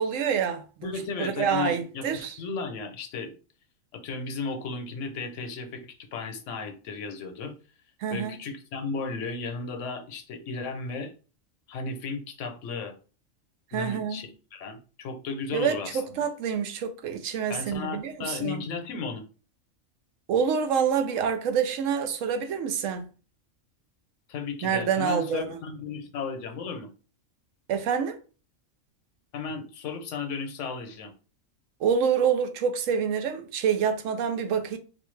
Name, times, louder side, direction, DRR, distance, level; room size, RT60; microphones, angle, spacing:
voice 1, 0.0-0.9 1.2-2.4 8.0-8.4 13.7-14.3 15.5-18.6 20.3-23.1 24.6-25.6 27.7-28.2 31.8-34.8, right 7 dB, 80° right, 0.9 m, -27 dB
voice 2, 0.8-3.3 3.9-7.5 8.1-11.1 11.7-12.9 13.7-16.0 17.5-19.2 24.3-26.9 29.3-31.1, left 4 dB, 70° left, 1.0 m, -35 dB
4.2 x 2.2 x 3.1 m
omnidirectional pair, 1.3 m